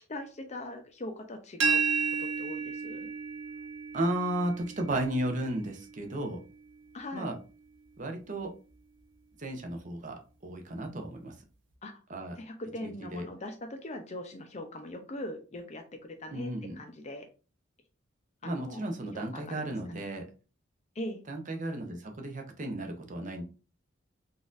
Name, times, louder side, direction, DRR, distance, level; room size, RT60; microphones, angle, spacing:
voice 1, 0.1-3.1 6.9-7.3 11.8-12.0 12.4-17.3 18.4-18.9 19.1-20.1 21.0-21.2, left 1 dB, 35° left, 6 dB, 0.5 m, -41 dB
sound 1, 1.6-7.4, right 5 dB, 70° right, 0.8 m, -33 dB
voice 2, 3.9-6.4 7.1-7.4 8.0-8.5 9.4-11.4 12.1-12.4 12.8-13.2 16.3-16.8 18.4-20.3 21.3-23.4, right 1 dB, 40° right, 4 dB, 0.6 m, -34 dB
3.9 x 2.5 x 2.5 m, 0.34 s
head